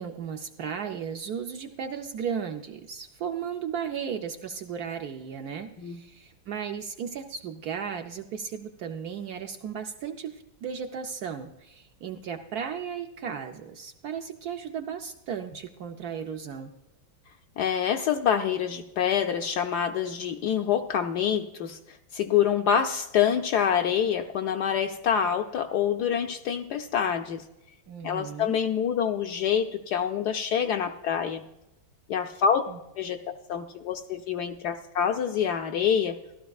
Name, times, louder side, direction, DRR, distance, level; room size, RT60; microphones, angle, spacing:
voice 1, 0.0-16.7 27.9-28.6 32.7-32.8, right 7 dB, 65° right, 5 dB, 1.0 m, -35 dB
voice 2, 17.6-27.4 28.0-31.4 32.1-32.6 33.0-33.2 33.5-36.2, left 8 dB, 70° left, 5 dB, 1.0 m, -26 dB
15.5 x 12.5 x 2.3 m, 0.92 s
omnidirectional pair, 2.1 m